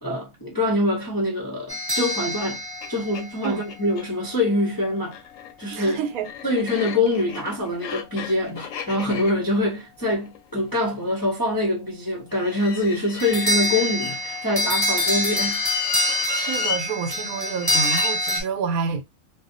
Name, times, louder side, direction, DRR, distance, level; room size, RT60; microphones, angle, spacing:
voice 1, 0.0-2.6 2.9-5.2 5.6-6.0 6.4-15.9, left 1 dB, 25° left, 0.5 m, -24 dB
sound 1, 1.7-3.9 13.2-18.4, left 1 dB, 15° right, 1.0 m, -25 dB
sound 2, 2.4-2.5 2.8-2.9 3.1-4.1 5.0-11.1 12.3-14.6 15.2-16.8 17.6-18.1, left 7 dB, 70° left, 0.9 m, -34 dB
voice 2, 5.7-6.3 16.3-19.0, right 6 dB, 85° right, 1.1 m, -28 dB
2.6 x 2.1 x 2.5 m
omnidirectional pair, 1.5 m